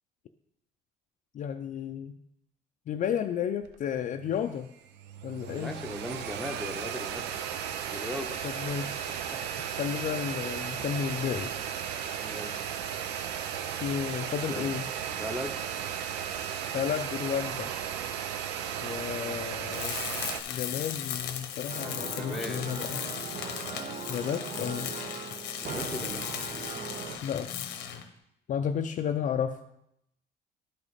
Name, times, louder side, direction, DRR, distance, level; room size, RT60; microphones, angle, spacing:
voice 1, 1.3-2.2 2.9-4.7 5.2-5.7 8.4-9.0 9.8-11.5 13.8-14.9 16.7-17.7 18.8-20.0 20.5-23.0 24.1-24.9 27.2-27.7 28.5-29.6, left 8 dB, 50° left, 6 dB, 0.4 m, -32 dB
sound 1, 3.6-3.7 4.0-4.6 4.8-20.4, right 8 dB, 80° right, 0.6 m, -35 dB
voice 2, 5.5-7.3 7.9-8.4 9.3-9.7 12.2-12.6 14.4-14.7 15.1-15.6 21.8-23.0 25.6-26.3, left 1 dB, ahead, 3 dB, 0.8 m, -39 dB
Tools, 19.7-28.1, left 9 dB, 90° left, 0.9 m, -37 dB
sound 2, 21.7-27.2, right 5 dB, 50° right, 0.9 m, -39 dB
11.0 x 4.9 x 4.1 m, 0.80 s
cardioid pair, 110°, 17 cm